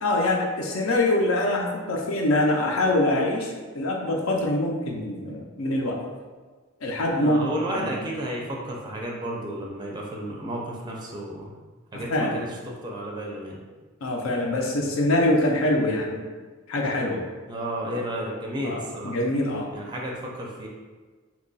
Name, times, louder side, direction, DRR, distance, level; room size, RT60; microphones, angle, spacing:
voice 1, 0.0-6.0 6.8-7.4 7.7-8.0 12.1-12.5 14.0-16.2 16.7-17.2 18.6-19.7, left 1 dB, 75° left, 1 dB, 0.5 m, -24 dB
voice 2, 7.2-11.5 11.9-13.6 17.5-19.1 19.7-20.7, right 1 dB, 20° right, -1 dB, 0.4 m, -32 dB
2.9 x 2.3 x 3.9 m, 1.4 s
head